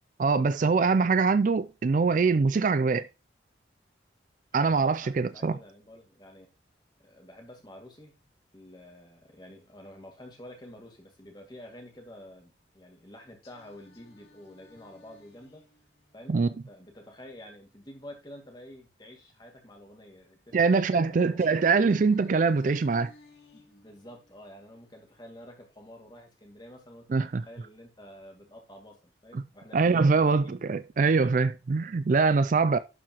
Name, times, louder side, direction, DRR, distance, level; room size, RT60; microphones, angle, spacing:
voice 1, 0.2-3.1 4.5-5.6 16.3-16.5 20.5-23.1 27.1-27.4 29.3-29.4 29.7-32.8, right 4 dB, 45° right, 0.4 m, -23 dB
voice 2, 4.6-6.5 7.0-8.1 8.5-15.6 16.1-21.9 23.5-30.6 31.0-31.5, left 1 dB, 25° left, 2.2 m, -49 dB
Singing, 13.4-17.4 21.4-25.4, left 3 dB, 55° left, 2.8 m, -57 dB
11.5 x 4.9 x 3.0 m
head